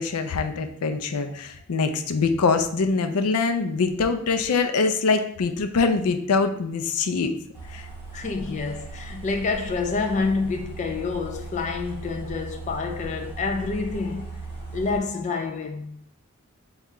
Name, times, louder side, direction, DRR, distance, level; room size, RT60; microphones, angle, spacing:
voice 1, 0.0-7.4 7.7-7.9, left 4 dB, 90° left, 0.5 m, -24 dB
sound 1, 7.5-15.0, right 4 dB, 10° right, 1.5 m, -38 dB
voice 2, 8.1-14.4 14.7-16.0, left 4 dB, 30° left, 0.3 m, -28 dB
4.1 x 2.3 x 3.7 m
head